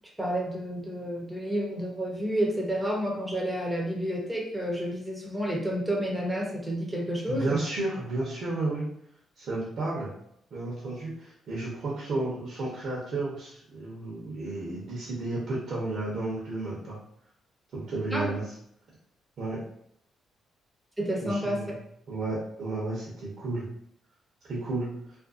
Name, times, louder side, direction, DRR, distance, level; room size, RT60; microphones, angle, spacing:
voice 1, 0.2-7.6 18.1-18.3 21.0-21.7, equal, 10° right, -2 dB, 0.8 m, -30 dB
voice 2, 7.3-8.9 9.4-10.1 10.5-17.0 17.7-18.4 19.4-19.6 21.2-21.8 22.1-23.7 24.5-24.9, right 2 dB, 65° right, -6 dB, 0.8 m, -32 dB
2.5 x 2.2 x 2.5 m, 0.70 s
supercardioid pair, 60°, 0 cm